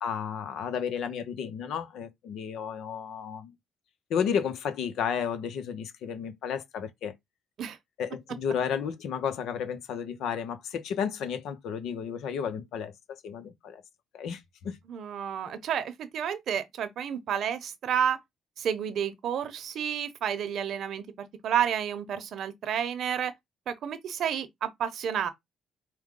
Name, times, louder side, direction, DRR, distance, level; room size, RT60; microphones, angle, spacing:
voice 1, 0.0-3.5 4.1-7.1 8.0-13.8 14.1-14.8, left 7 dB, 80° left, 0.7 m, -32 dB
voice 2, 14.9-18.2 18.6-23.3 23.7-25.3, right 8 dB, 70° right, 0.8 m, -30 dB
4.7 x 2.2 x 3.7 m
cardioid pair, 90°, 0 cm